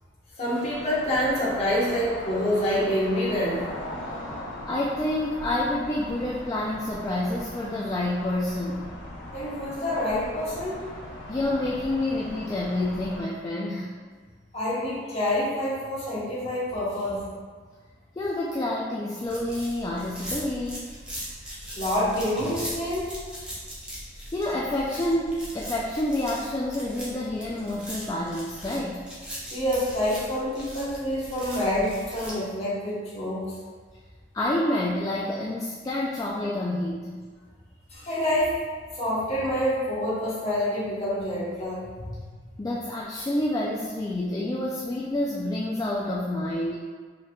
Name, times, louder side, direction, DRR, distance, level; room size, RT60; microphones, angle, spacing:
voice 1, 0.4-3.6 9.3-10.8 14.5-17.3 21.8-23.2 29.5-33.5 37.9-38.6 39.0-42.2, left 1 dB, 35° left, -8 dB, 1.1 m, -27 dB
sound 1, 0.6-13.2, left 1 dB, 85° left, 0.9 m, -40 dB
voice 2, 4.7-8.9 11.3-13.9 18.2-20.9 24.3-29.0 34.3-37.2 42.6-46.8, left 1 dB, 20° left, -4 dB, 0.3 m, -28 dB
sound 2, 19.2-32.3, equal, 5° right, 0.8 m, -40 dB
4.5 x 3.6 x 2.3 m, 1.5 s
head